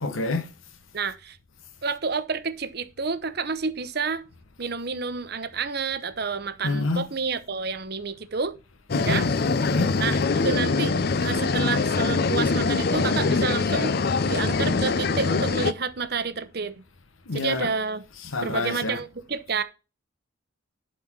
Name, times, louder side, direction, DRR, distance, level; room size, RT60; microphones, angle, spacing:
voice 1, 0.0-0.5 6.6-7.1 8.9-9.2 9.6-9.9 17.3-17.7 18.2-19.0, left 2 dB, 80° left, 1.1 m, -28 dB
voice 2, 0.9-1.4 1.8-4.2 4.6-8.5 9.0-9.3 10.0-13.9 14.3-16.7 17.3-18.0 18.4-19.6, right 5 dB, 50° right, 0.8 m, -29 dB
sound 1, 8.9-15.7, left 4 dB, 50° left, 0.5 m, -23 dB
11.5 x 4.3 x 6.0 m
head